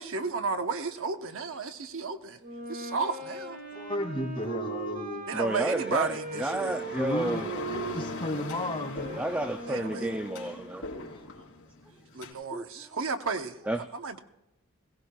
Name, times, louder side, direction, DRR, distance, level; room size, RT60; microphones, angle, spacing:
voice 1, 0.0-2.4 2.7-3.6 5.3-6.8 9.7-10.1 11.4-11.5 12.1-14.2, right 4 dB, 65° right, 7 dB, 0.9 m, -33 dB
Wind instrument woodwind instrument, 2.4-10.8, right 3 dB, 45° right, 3.3 m, -39 dB
voice 2, 3.7-5.3 6.9-9.2 10.8-11.2, left 1 dB, 25° left, 1 dB, 2.3 m, -34 dB
voice 3, 5.3-7.6 9.1-10.9 12.5-12.6 13.7-13.8, right 1 dB, 5° right, 7 dB, 0.4 m, -31 dB
sound 1, 5.7-12.3, left 3 dB, 65° left, 3.3 m, -42 dB
21.5 x 17.5 x 2.3 m, 0.88 s
head